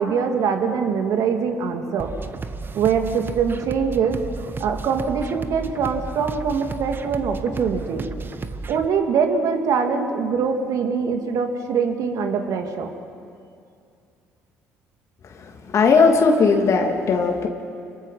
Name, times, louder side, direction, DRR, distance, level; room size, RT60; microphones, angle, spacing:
voice 1, 0.0-2.1 2.7-8.1 8.7-12.9, right 6 dB, 65° right, 5 dB, 2.4 m, -23 dB
sound 1, 2.0-8.8, right 4 dB, 35° right, 1.3 m, -33 dB
voice 2, 15.2-17.5, left 4 dB, 50° left, 3 dB, 2.6 m, -18 dB
27.5 x 22.0 x 5.8 m, 2.4 s
hypercardioid pair, 60°, 6 cm